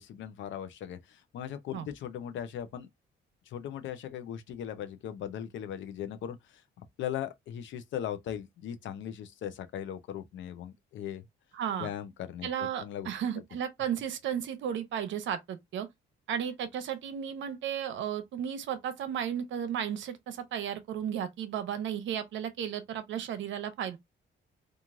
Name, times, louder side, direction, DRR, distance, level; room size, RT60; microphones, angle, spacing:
voice 1, 0.0-2.9 3.5-6.6 7.0-11.2 11.8-13.1, left 10 dB, 75° left, 0.6 m, -38 dB
voice 2, 11.5-11.9 12.4-15.9 16.3-24.0, right 9 dB, 75° right, 0.7 m, -34 dB
3.0 x 2.4 x 2.4 m
cardioid pair, 90°, 20 cm